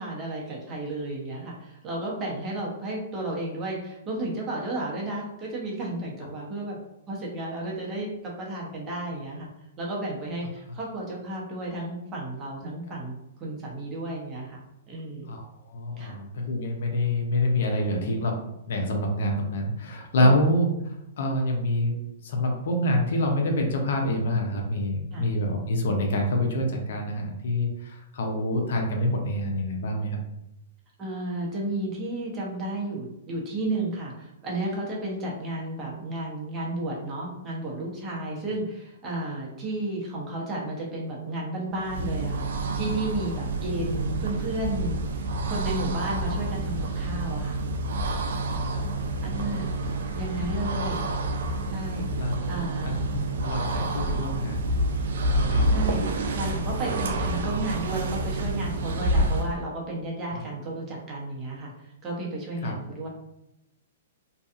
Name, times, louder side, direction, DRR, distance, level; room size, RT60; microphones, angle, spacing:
voice 1, 0.0-6.8 7.1-9.5 9.8-13.1 13.4-14.6 14.9-15.2 16.0-16.1 20.2-20.4 25.1-25.3 31.0-42.5 42.8-47.6 49.2-49.7 50.2-51.0 51.7-52.2 52.5-52.9 53.8-53.9 55.7-61.7 62.0-63.1, right 1 dB, 25° right, -4 dB, 0.8 m, -33 dB
voice 2, 15.2-18.4 18.7-21.9 22.2-30.2 48.4-49.6 52.2-54.7 55.4-55.7 60.3-60.4 62.6-62.8, left 1 dB, 65° left, 2 dB, 0.6 m, -27 dB
sound 1, 41.8-59.6, right 1 dB, 70° right, 0.3 m, -28 dB
2.6 x 2.3 x 2.4 m, 0.85 s
hypercardioid pair, 145°, 0 cm